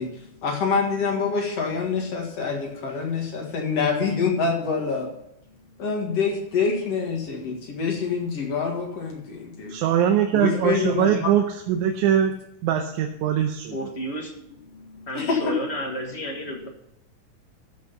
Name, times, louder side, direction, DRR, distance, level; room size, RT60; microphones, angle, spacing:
voice 1, 0.0-5.1 5.8-9.7 10.3-11.3 14.7-15.6, left 5 dB, 55° left, 1 dB, 2.8 m, -26 dB
voice 2, 9.7-12.3 12.6-13.8, right 9 dB, 80° right, 4 dB, 2.2 m, -22 dB
voice 3, 13.7-14.3 15.1-16.7, equal, 35° left, 2 dB, 1.2 m, -31 dB
13.5 x 6.2 x 5.7 m, 0.79 s
omnidirectional pair, 3.4 m